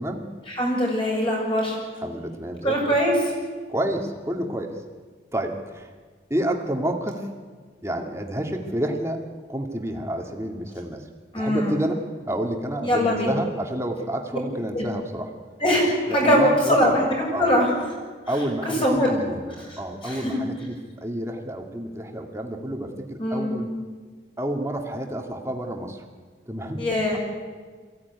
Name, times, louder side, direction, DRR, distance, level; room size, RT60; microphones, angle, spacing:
voice 1, 0.5-1.8 2.6-3.1 11.3-11.7 12.8-13.3 14.7-14.9 15.6-17.0 17.4-17.7 18.6-19.2 19.7-20.3 23.2-23.5 26.8-27.2, equal, 30° left, -2 dB, 7.1 m, -22 dB
voice 2, 2.0-3.0 3.7-4.8 5.3-5.9 6.3-7.3 7.8-9.2 9.5-11.1 11.4-15.3 16.1-16.8 17.3-17.6 18.3-23.7 24.4-26.0 26.5-26.8, right 1 dB, 15° right, 3 dB, 2.1 m, -29 dB
23.0 x 16.0 x 9.7 m, 1.5 s
head